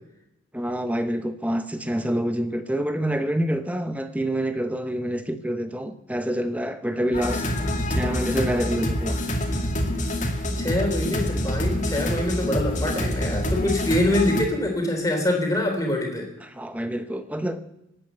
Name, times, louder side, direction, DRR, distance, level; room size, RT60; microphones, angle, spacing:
voice 1, 0.5-7.5 7.9-9.2 16.4-17.6, right 1 dB, 5° right, 0.9 m, -27 dB
sound 1, 7.1-14.4, left 1 dB, 35° left, 2.3 m, -26 dB
voice 2, 10.6-16.3, left 1 dB, 15° left, 3.3 m, -25 dB
19.0 x 8.6 x 8.1 m
head